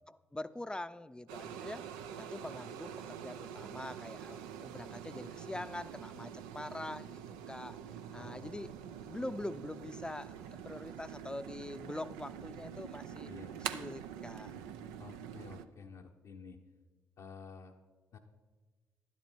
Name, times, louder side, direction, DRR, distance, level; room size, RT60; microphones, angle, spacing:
voice 1, 0.1-1.9 2.2-7.2 7.5-7.8 8.1-8.7 9.1-10.4 10.6-13.3 13.7-14.5, left 1 dB, 10° left, 13 dB, 0.5 m, -44 dB
sound 1, 1.3-15.7, right 8 dB, 90° right, 0.5 m, -45 dB
voice 2, 8.1-9.3 13.2-13.6 15.0-16.6 17.2-17.7 18.1-18.2, left 5 dB, 65° left, -1 dB, 0.8 m, -52 dB
12.0 x 10.5 x 4.5 m, 1.3 s
hypercardioid pair, 50°, 7 cm